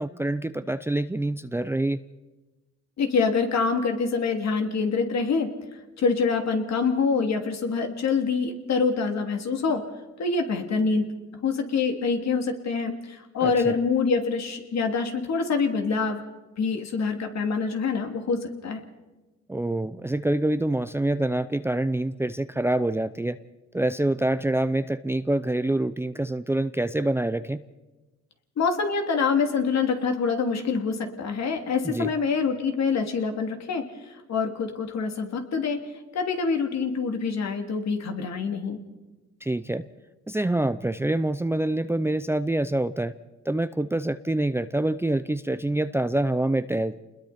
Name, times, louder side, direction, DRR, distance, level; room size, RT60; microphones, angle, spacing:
voice 1, 0.0-2.0 13.4-13.8 19.5-23.4 23.7-27.6 31.8-32.1 39.4-39.9 40.3-43.1 43.4-47.0, right 1 dB, 10° right, 13 dB, 0.6 m, -26 dB
voice 2, 3.0-5.5 6.0-9.9 10.2-11.1 11.4-16.2 16.6-18.8 28.6-38.8, left 5 dB, 60° left, 4 dB, 2.9 m, -25 dB
28.5 x 21.0 x 4.3 m, 1.1 s
cardioid pair, 90°, 30 cm